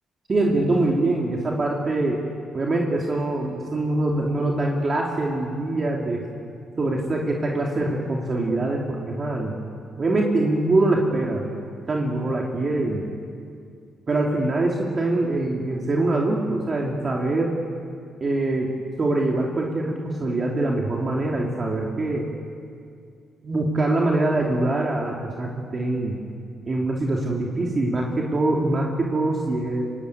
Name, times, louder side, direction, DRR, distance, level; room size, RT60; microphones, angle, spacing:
voice 1, 0.3-2.2 2.5-6.2 6.8-9.5 10.0-11.5 11.9-13.1 14.1-17.6 18.2-18.7 19.0-22.2 23.4-26.2 26.7-29.8, right 2 dB, 35° right, -1 dB, 3.0 m, -23 dB
24.0 x 18.0 x 9.6 m, 2.3 s
cardioid pair, 90°, 0 cm